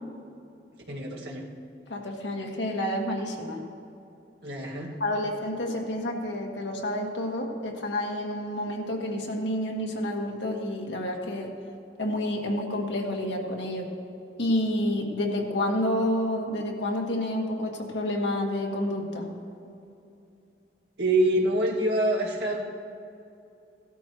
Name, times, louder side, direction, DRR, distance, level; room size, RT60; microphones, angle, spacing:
voice 1, 0.9-1.5 4.4-4.9 21.0-22.7, right 1 dB, 70° right, -2 dB, 1.9 m, -25 dB
voice 2, 1.9-3.6 5.0-11.5 12.0-13.9 14.4-19.3, left 1 dB, 85° left, 1 dB, 1.6 m, -29 dB
16.5 x 12.5 x 3.0 m, 2.6 s
head